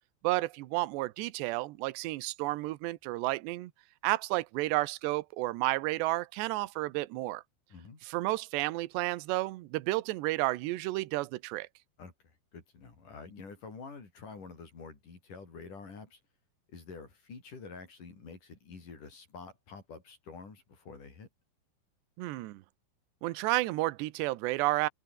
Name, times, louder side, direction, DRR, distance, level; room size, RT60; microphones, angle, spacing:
voice 1, 0.2-3.7 4.0-7.4 8.0-11.7 22.2-22.6 23.2-24.9, right 19 dB, 75° right, 2.8 m, -31 dB
voice 2, 7.7-8.0 12.0-16.2 16.7-21.3, left 4 dB, 40° left, 6.3 m, -48 dB
open air
omnidirectional pair, 5.9 m